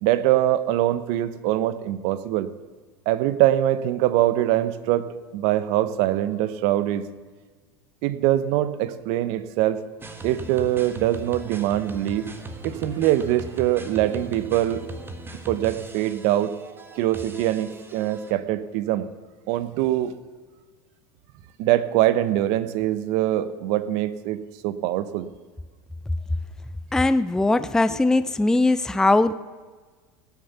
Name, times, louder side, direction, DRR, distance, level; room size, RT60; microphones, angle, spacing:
voice 1, 0.0-2.5 3.1-5.1 5.3-7.1 8.0-9.8 10.2-12.3 12.6-14.8 15.5-16.6 16.9-19.1 19.5-20.1 21.6-25.3, right 13 dB, 60° right, 15 dB, 0.9 m, -23 dB
sound 1, 10.0-18.3, right 2 dB, 15° right, 1.5 m, -39 dB
voice 2, 26.9-29.3, left 2 dB, 5° left, 13 dB, 0.5 m, -20 dB
17.5 x 6.7 x 6.9 m, 1.4 s
hypercardioid pair, 95°, 13 cm